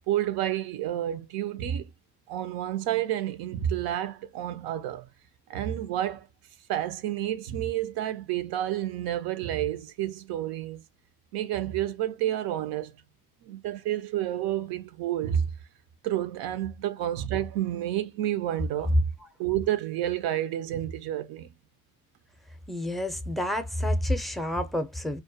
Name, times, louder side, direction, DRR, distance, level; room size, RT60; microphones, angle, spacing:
voice 1, 0.1-1.9 2.3-5.0 5.5-6.3 6.7-10.8 11.3-12.9 13.4-15.5 16.0-19.1 19.4-21.5, right 12 dB, 80° right, 0.5 m, -30 dB
voice 2, 22.7-25.2, left 1 dB, ahead, 0.4 m, -29 dB
2.3 x 2.1 x 2.6 m
cardioid pair, 85°, 36 cm